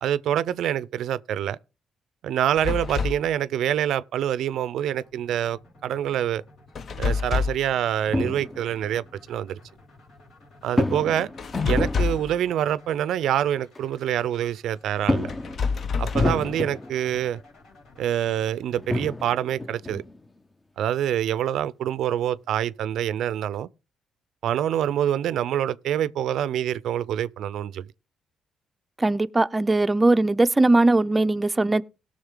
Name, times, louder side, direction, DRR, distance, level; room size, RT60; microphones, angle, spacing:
voice 1, 0.0-1.6 2.2-6.4 7.0-9.6 10.6-11.3 11.7-15.3 16.0-17.4 18.0-20.0 20.8-23.7 24.4-27.9, right 10 dB, 80° right, 0.4 m, -26 dB
sound 1, 2.6-3.3 6.7-7.7 11.4-12.4 15.3-16.5, left 5 dB, 50° left, 0.8 m, -27 dB
sound 2, 4.8-19.7, left 2 dB, 75° left, 5.6 m, -54 dB
sound 3, 8.1-8.8 10.6-12.5 13.7-13.8 14.2-14.3 15.0-17.3 18.3-18.4 18.7-20.3, left 2 dB, 20° left, 0.7 m, -29 dB
voice 2, 29.0-31.8, right 2 dB, 20° right, 0.5 m, -20 dB
17.5 x 6.4 x 3.7 m
cardioid pair, 90°, 0 cm